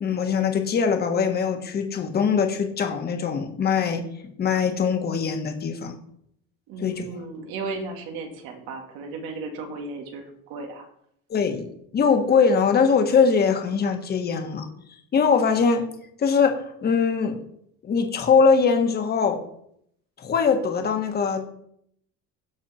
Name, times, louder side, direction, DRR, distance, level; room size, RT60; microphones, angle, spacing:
voice 1, 0.0-4.0 4.4-5.9 6.8-7.0 11.3-11.6 11.9-14.7 15.1-15.9 16.2-17.4 17.8-19.4 20.2-21.5, left 5 dB, 30° left, 5 dB, 1.5 m, -22 dB
voice 2, 6.7-10.2 10.5-10.9, right 3 dB, 80° right, 2 dB, 2.3 m, -35 dB
16.0 x 6.4 x 4.4 m, 0.71 s
cardioid pair, 165°, 34 cm